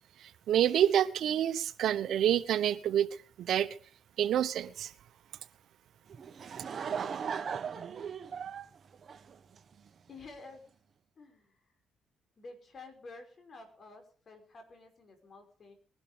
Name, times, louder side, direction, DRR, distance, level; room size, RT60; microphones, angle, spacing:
voice 1, 0.2-3.1 3.4-3.7 4.2-4.9, right 10 dB, 70° right, 1.1 m, -28 dB
Laughter / Crowd, 6.1-9.9, right 7 dB, 50° right, 1.4 m, -38 dB
voice 2, 10.1-10.6 11.2-11.6 12.4-15.7, left 3 dB, 45° left, 5.6 m, -51 dB
21.0 x 12.0 x 5.2 m
cardioid pair, 90°, 0 cm